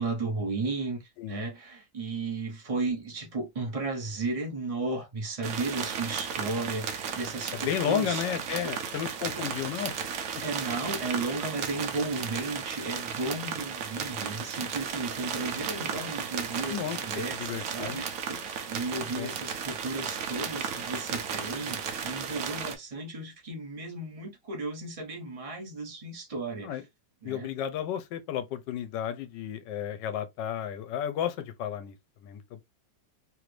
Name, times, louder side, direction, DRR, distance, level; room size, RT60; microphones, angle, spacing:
voice 1, 0.0-1.0 1.3-8.2 8.6-8.8 9.3-9.4 10.4-26.8 27.2-27.5, right 3 dB, 35° right, 0.6 m, -34 dB
sound 1, 5.4-22.7, right 7 dB, 70° right, 0.8 m, -35 dB
voice 2, 7.5-9.9 16.7-18.0 19.0-19.3 26.6-26.8 27.2-32.6, left 9 dB, 75° left, 1.2 m, -33 dB
3.2 x 2.5 x 3.1 m
omnidirectional pair, 2.0 m